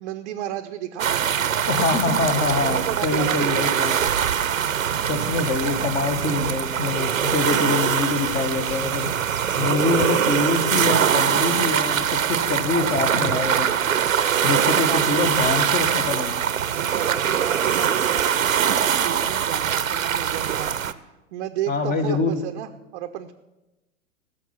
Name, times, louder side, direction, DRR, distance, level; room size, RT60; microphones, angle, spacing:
voice 1, 0.0-1.6 1.9-2.1 2.6-4.3 14.2-15.0 16.7-23.3, right 12 dB, 40° right, 6 dB, 0.7 m, -33 dB
sound 1, 1.0-20.9, right 8 dB, 80° right, 0.7 m, -23 dB
voice 2, 1.7-3.9 5.1-9.1 9.6-13.7 14.4-16.3 21.7-22.4, left 3 dB, 25° left, 9 dB, 1.5 m, -25 dB
16.0 x 6.7 x 7.3 m, 1.0 s
figure-of-eight pair, 105°, 40 cm